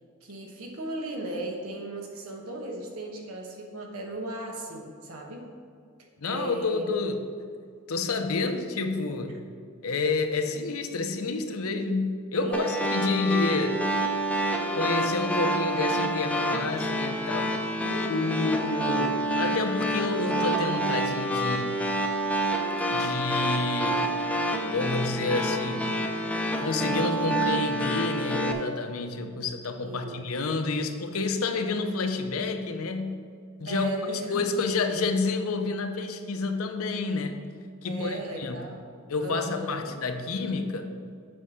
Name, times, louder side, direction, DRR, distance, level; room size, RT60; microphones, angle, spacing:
voice 1, 0.2-5.4 6.2-6.9 12.3-12.7 13.1-13.2 17.8-18.5 29.8-30.3 33.7-34.5 37.8-38.8 39.2-39.9, right 1 dB, 85° right, 1 dB, 1.3 m, -36 dB
voice 2, 6.2-7.2 7.9-9.4 9.8-13.9 14.7-17.6 18.1-21.8 22.9-24.1 24.7-26.0 26.6-33.2 33.6-37.4 37.8-38.7 39.1-40.9, left 3 dB, 85° left, 6 dB, 0.7 m, -29 dB
sound 1, 12.5-28.5, right 1 dB, 5° left, 0.6 m, -28 dB
8.0 x 4.7 x 6.3 m, 2.2 s
head